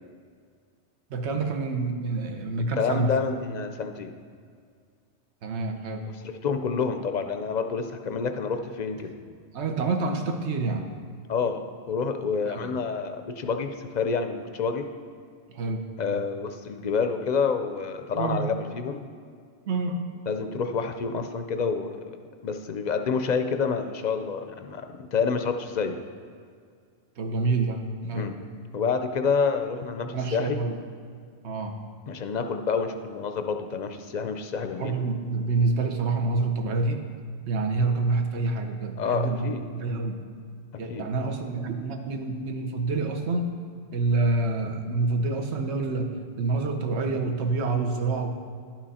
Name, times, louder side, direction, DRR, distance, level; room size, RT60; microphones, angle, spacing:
voice 1, 1.1-3.1 5.4-6.0 9.5-10.8 12.5-12.7 15.5-15.9 18.2-18.5 19.7-20.1 27.2-28.3 30.1-30.8 31.4-31.8 34.7-37.0 37.5-40.2 40.8-43.6 43.9-48.3, right 3 dB, 75° right, 4 dB, 1.1 m, -27 dB
voice 2, 2.8-4.1 6.2-9.1 11.3-13.7 13.9-14.9 16.0-19.0 20.3-22.0 22.4-24.8 25.1-26.0 28.1-28.4 28.7-30.6 32.1-35.0 39.0-39.7 40.9-41.1, left 5 dB, 55° left, 7 dB, 0.5 m, -28 dB
11.5 x 5.9 x 4.2 m, 2.2 s
omnidirectional pair, 1.1 m